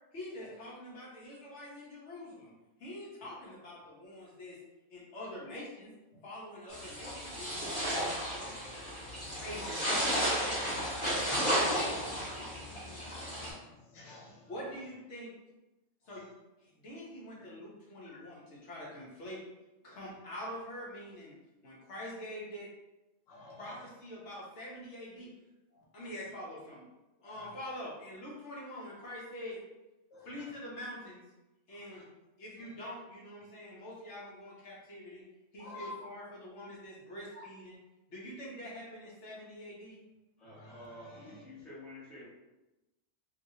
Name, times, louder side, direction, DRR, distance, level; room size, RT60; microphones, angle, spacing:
voice 1, 0.1-2.5 2.8-4.6 4.9-5.9 6.2-8.5 9.0-10.8 12.1-12.6 14.5-15.3 16.1-16.3 16.6-19.5 19.8-21.3 21.6-22.7 23.6-25.3 25.9-26.8 27.2-29.6 30.2-31.2 31.7-32.1 32.4-35.2 35.5-37.8 38.1-40.0, left 1 dB, 65° left, -5 dB, 1.1 m, -45 dB
sound 1, 6.7-13.5, equal, 25° left, 1.2 m, -33 dB
voice 2, 11.3-12.5 13.2-14.5 18.1-18.2 23.3-23.8 25.7-25.8 27.2-27.6 30.1-30.5 31.8-32.0 32.6-32.7 35.6-36.1 37.3-37.4 40.4-41.4, left 2 dB, 85° left, -1 dB, 1.0 m, -51 dB
voice 3, 40.4-42.3, left 2 dB, ahead, -10 dB, 1.1 m, -50 dB
2.8 x 2.7 x 2.7 m, 1.0 s
omnidirectional pair, 1.3 m